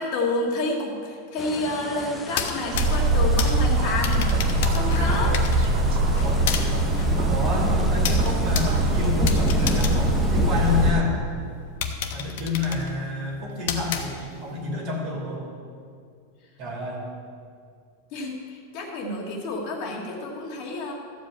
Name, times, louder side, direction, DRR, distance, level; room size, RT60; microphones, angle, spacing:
voice 1, 0.0-5.3 18.1-20.9, left 2 dB, 40° left, -1 dB, 1.7 m, -29 dB
sound 1, 1.4-11.0, left 1 dB, 5° left, 0.7 m, -31 dB
sound 2, 2.2-11.0 11.4-11.5 11.8-14.6, left 7 dB, 55° left, 1.0 m, -33 dB
sound 3, 2.7-10.9, right 1 dB, 60° right, 1.0 m, -22 dB
voice 2, 4.9-5.5 6.2-6.5 7.3-11.2 12.1-15.5 16.6-17.0, left 2 dB, 35° right, -2 dB, 2.6 m, -30 dB
13.5 x 5.1 x 8.2 m, 2.3 s
supercardioid pair, 175°, 0 cm